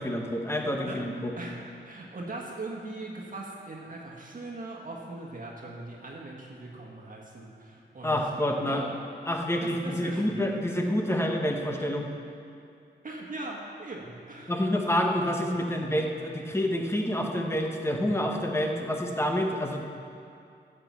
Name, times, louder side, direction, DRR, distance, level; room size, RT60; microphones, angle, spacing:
voice 1, 0.0-1.3 8.0-8.8 9.3-12.1 14.5-19.8, left 1 dB, 15° left, 2 dB, 1.0 m, -28 dB
voice 2, 0.8-9.0 9.6-10.4 11.1-11.2 13.0-14.7, right 2 dB, 45° right, -2 dB, 1.5 m, -40 dB
15.0 x 6.0 x 7.4 m, 2.5 s
wide cardioid pair, 165°, 19 cm